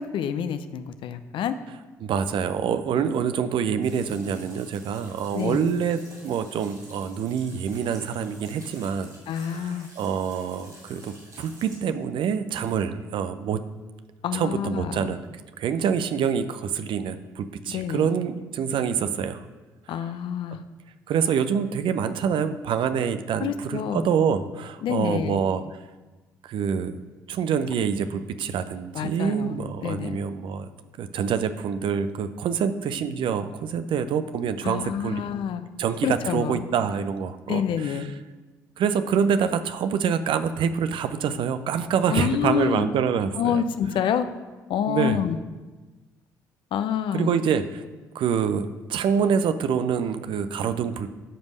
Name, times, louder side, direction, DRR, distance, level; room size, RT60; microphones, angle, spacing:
voice 1, 0.0-1.6 5.3-5.7 9.3-9.9 14.2-15.1 17.7-18.1 19.9-20.7 23.4-24.1 24.8-25.4 28.9-30.2 34.6-35.6 36.0-36.6 37.5-38.1 42.1-42.8 43.4-44.3 44.7-45.4 46.7-47.3, left 8 dB, 60° left, 10 dB, 0.7 m, -27 dB
voice 2, 2.0-9.1 9.4-13.6 14.3-15.2 15.6-19.4 20.5-20.6 21.1-25.6 26.4-26.9 27.3-30.7 31.0-35.2 35.8-37.9 38.8-43.6 44.9-45.2 47.1-47.8 48.1-51.1, right 7 dB, 60° right, 11 dB, 0.7 m, -26 dB
sound 1, 3.8-11.8, right 1 dB, 90° right, 3.9 m, -49 dB
11.5 x 5.3 x 6.5 m, 1.2 s
hypercardioid pair, 45°, 10 cm